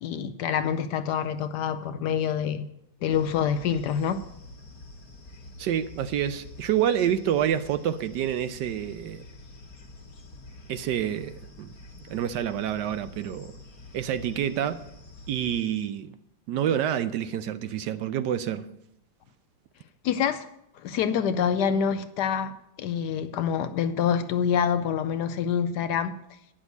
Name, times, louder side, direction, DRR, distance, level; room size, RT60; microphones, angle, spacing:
voice 1, 0.0-2.7 3.0-4.2 20.0-20.5 20.8-26.2, left 7 dB, 70° left, 1.1 m, -26 dB
sound 1, 3.1-15.6, left 2 dB, 50° left, 1.6 m, -47 dB
voice 2, 5.6-9.2 10.7-11.7 12.1-13.5 13.9-14.8 15.3-16.1 16.5-18.7, right 10 dB, 75° right, 1.1 m, -28 dB
9.9 x 6.2 x 8.2 m
omnidirectional pair, 2.1 m